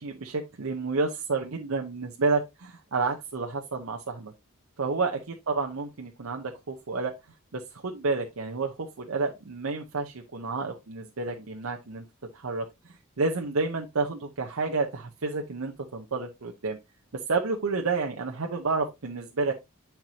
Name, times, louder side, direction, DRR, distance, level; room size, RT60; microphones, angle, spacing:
voice 1, 0.0-4.3 4.8-7.1 7.5-12.0 12.3-12.6 13.2-16.8 17.3-19.5, right 4 dB, 80° right, 2 dB, 0.8 m, -30 dB
9.1 x 4.6 x 2.8 m, 0.22 s
head